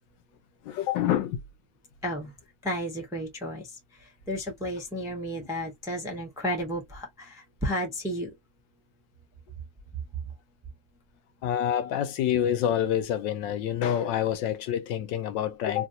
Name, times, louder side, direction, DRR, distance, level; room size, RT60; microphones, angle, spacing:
voice 1, 0.6-1.4 11.4-15.9, left 10 dB, 80° left, 1.3 m, -27 dB
voice 2, 2.0-2.3 2.6-8.3, equal, ahead, 0.7 m, -33 dB
3.1 x 2.6 x 2.7 m
omnidirectional pair, 2.0 m